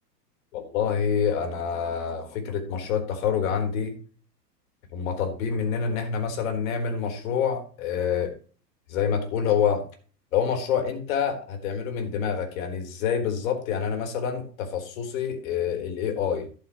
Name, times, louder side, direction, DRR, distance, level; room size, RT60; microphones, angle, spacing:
voice 1, 0.5-3.9 4.9-8.3 8.9-9.8 10.3-16.5, left 7 dB, 55° left, 4 dB, 4.1 m, -27 dB
12.0 x 11.5 x 3.1 m, 0.39 s
hypercardioid pair, 110°, 49 cm